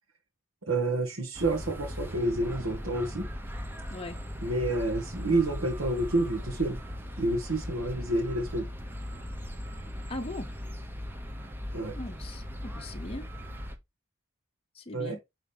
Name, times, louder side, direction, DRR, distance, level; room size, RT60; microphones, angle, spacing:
voice 1, 0.7-3.3 4.4-6.8 7.2-8.7 11.7-12.0 14.9-15.2, right 2 dB, 75° right, 1.8 m, -29 dB
sound 1, 1.3-13.8, equal, 10° right, 1.0 m, -38 dB
voice 2, 10.1-10.5 12.0-13.2 14.7-15.2, left 1 dB, 25° left, 0.8 m, -39 dB
9.9 x 3.8 x 3.5 m
head